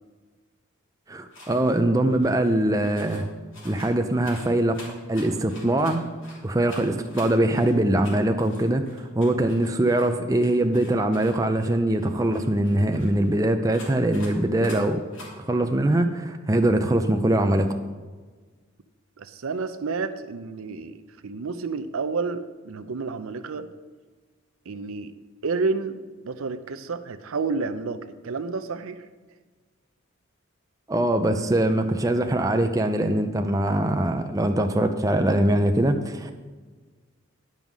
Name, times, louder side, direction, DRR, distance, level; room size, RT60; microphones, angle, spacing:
voice 1, 1.1-3.3 3.6-4.8 5.1-6.0 6.4-15.0 15.4-17.8 30.9-36.3, right 1 dB, 15° right, 6 dB, 0.5 m, -22 dB
sound 1, 1.3-1.8 2.1-3.3 3.5-6.4 6.6-10.1 10.4-13.3 13.7-14.3 14.6-14.8 15.1-15.3, left 1 dB, 65° left, 3.0 m, -46 dB
voice 2, 19.2-23.7 24.7-25.1 25.4-29.0, right 4 dB, 75° right, 11 dB, 0.5 m, -30 dB
10.5 x 5.5 x 6.1 m, 1.4 s
head